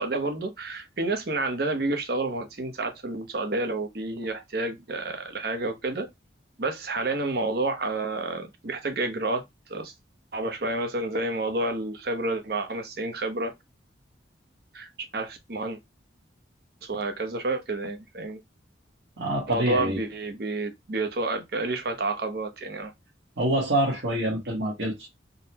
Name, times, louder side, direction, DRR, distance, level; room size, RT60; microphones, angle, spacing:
voice 1, 0.0-6.1 6.6-9.4 9.7-9.9 10.3-13.5 14.7-15.8 16.8-18.4 19.5-22.9, right 2 dB, 55° right, 0.8 m, -29 dB
voice 2, 19.2-20.0 23.4-25.1, right 1 dB, 70° right, 1.2 m, -26 dB
3.7 x 2.1 x 2.8 m
head